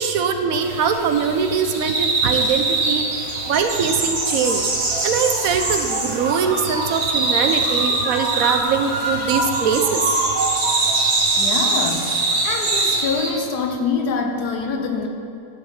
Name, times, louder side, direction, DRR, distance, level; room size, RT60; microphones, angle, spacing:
voice 1, 0.0-3.1 3.4-4.7 5.0-10.0, right 6 dB, 70° right, 6 dB, 1.0 m, -22 dB
sound 1, 0.6-13.3, right 2 dB, 45° right, 1.5 m, -22 dB
voice 2, 11.4-15.1, left 5 dB, 80° left, 3 dB, 1.5 m, -25 dB
11.5 x 5.2 x 5.7 m, 2.4 s
omnidirectional pair, 1.7 m